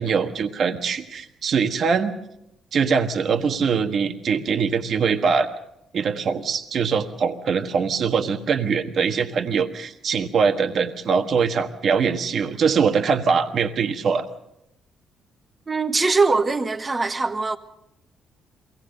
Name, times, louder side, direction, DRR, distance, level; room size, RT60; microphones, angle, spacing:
voice 1, 0.0-2.1 2.7-5.5 5.9-14.3, right 6 dB, 60° right, 1.4 m, -22 dB
voice 2, 15.7-17.6, right 3 dB, 25° right, 1.3 m, -21 dB
22.5 x 18.0 x 6.6 m
cardioid pair, 90°, 0 cm